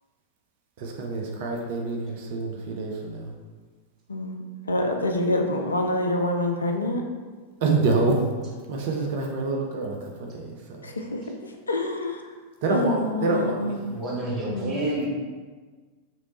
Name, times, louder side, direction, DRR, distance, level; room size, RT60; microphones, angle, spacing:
voice 1, 0.8-3.3 7.6-8.3 8.7-10.9 12.6-13.8, right 3 dB, 50° right, 0 dB, 0.5 m, -27 dB
voice 2, 4.1-7.0 10.8-11.2 11.7-12.2 12.7-13.8 14.5-14.7, left 1 dB, 75° left, 3 dB, 0.4 m, -26 dB
voice 3, 13.9-15.1, right 1 dB, 30° right, -5 dB, 1.0 m, -29 dB
3.0 x 3.0 x 2.9 m, 1.4 s
figure-of-eight pair, 90°, 0 cm